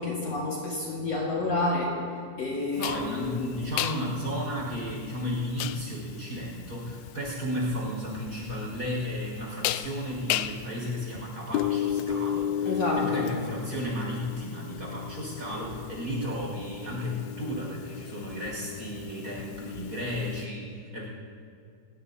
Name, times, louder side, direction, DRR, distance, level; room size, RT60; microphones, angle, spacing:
voice 1, 0.0-1.9 2.4-3.4 12.7-13.3, left 2 dB, 50° left, -5 dB, 2.8 m, -29 dB
sound 1, 2.8-20.4, left 10 dB, 90° left, 1.7 m, -34 dB
voice 2, 2.8-21.1, equal, 25° right, -4 dB, 5.8 m, -33 dB
28.5 x 17.5 x 2.8 m, 2.4 s
omnidirectional pair, 3.9 m